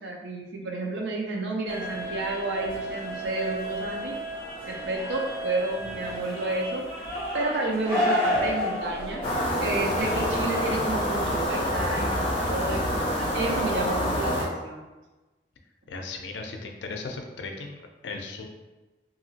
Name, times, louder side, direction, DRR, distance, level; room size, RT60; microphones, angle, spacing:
voice 1, 0.0-4.2 4.6-7.0 7.3-14.9, right 2 dB, 85° right, 0 dB, 0.6 m, -31 dB
sound 1, 1.7-10.7, equal, 25° right, 1.2 m, -32 dB
sound 2, 9.2-14.5, equal, 30° left, 0.5 m, -27 dB
voice 2, 15.9-17.8 18.0-18.5, left 3 dB, 90° left, 3 dB, 0.4 m, -36 dB
2.8 x 2.7 x 2.7 m, 1.1 s
head